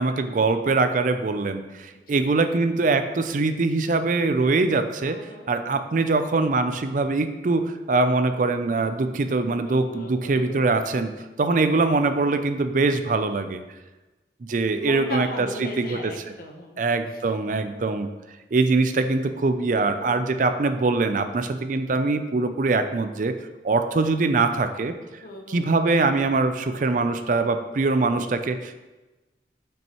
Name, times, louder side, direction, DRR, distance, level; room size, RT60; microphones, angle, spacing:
voice 1, 0.0-5.2 5.5-11.1 11.4-13.6 14.5-16.1 16.8-18.1 18.5-23.4 23.6-24.9 25.5-28.8, right 3 dB, 45° right, 9 dB, 0.4 m, -23 dB
voice 2, 1.9-2.5 5.0-5.5 9.6-10.6 14.8-16.8 19.7-20.2 25.2-25.6, left 1 dB, 55° left, 2 dB, 1.0 m, -38 dB
8.8 x 5.4 x 3.0 m, 1.2 s
head